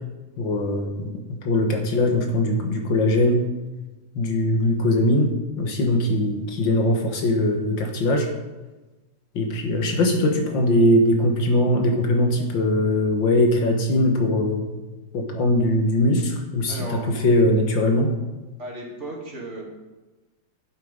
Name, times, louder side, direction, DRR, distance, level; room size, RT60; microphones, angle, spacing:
voice 1, 0.4-3.5 4.2-8.3 9.3-14.6 15.1-18.1, left 1 dB, 85° left, 3 dB, 2.2 m, -21 dB
voice 2, 16.7-17.1 18.6-19.6, right 1 dB, 40° right, -2 dB, 2.6 m, -35 dB
12.0 x 7.7 x 5.2 m, 1.2 s
omnidirectional pair, 2.0 m